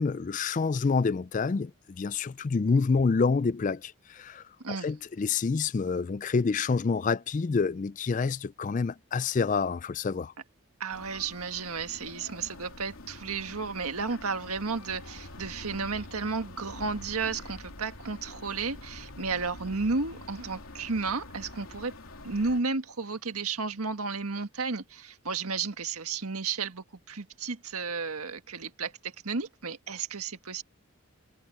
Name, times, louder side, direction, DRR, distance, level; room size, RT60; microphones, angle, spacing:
voice 1, 0.0-10.3, left 4 dB, 35° left, 0.3 m, -28 dB
voice 2, 10.8-22.0 22.2-30.6, right 4 dB, 90° right, 1.7 m, -33 dB
sound 1, 10.9-22.6, left 2 dB, 75° left, 3.2 m, -46 dB
head